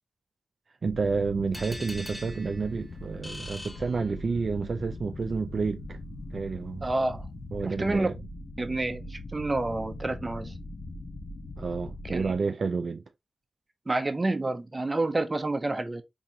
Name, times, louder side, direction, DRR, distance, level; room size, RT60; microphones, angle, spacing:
sound 1, 0.8-12.4, left 1 dB, 65° left, 0.7 m, -41 dB
voice 1, 0.8-6.0 6.3-6.9 7.5-8.2 11.6-13.0, right 4 dB, 65° right, 0.3 m, -30 dB
sound 2, 1.5-4.5, left 1 dB, 15° left, 1.3 m, -43 dB
voice 2, 6.8-7.2 7.6-8.1 8.6-10.5 12.0-12.3 13.9-16.0, right 2 dB, 30° right, 0.7 m, -29 dB
3.8 x 2.8 x 2.7 m
cardioid pair, 60°, 0 cm